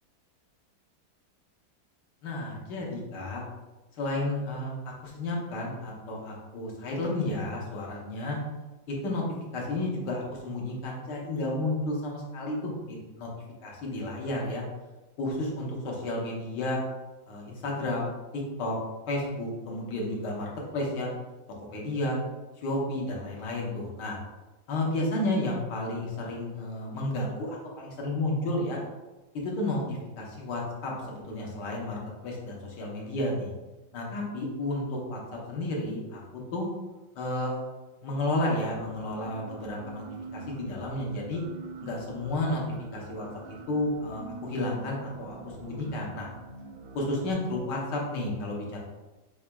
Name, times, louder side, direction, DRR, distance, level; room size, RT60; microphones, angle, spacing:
voice 1, 2.2-3.4 4.0-4.8 5.0-8.4 8.9-9.2 9.5-13.3 13.6-14.6 15.2-16.8 17.3-18.8 19.1-21.1 21.7-22.2 22.6-24.2 24.7-28.8 29.3-33.5 33.9-36.7 37.1-37.6 38.0-40.0 40.3-41.4 41.8-42.6 42.9-43.3 43.7-46.3 46.9-48.8, left 1 dB, 70° left, -2 dB, 1.5 m, -32 dB
sound 1, 38.7-47.3, right 3 dB, 85° right, 1.3 m, -45 dB
4.7 x 4.1 x 2.2 m, 1.1 s
omnidirectional pair, 2.0 m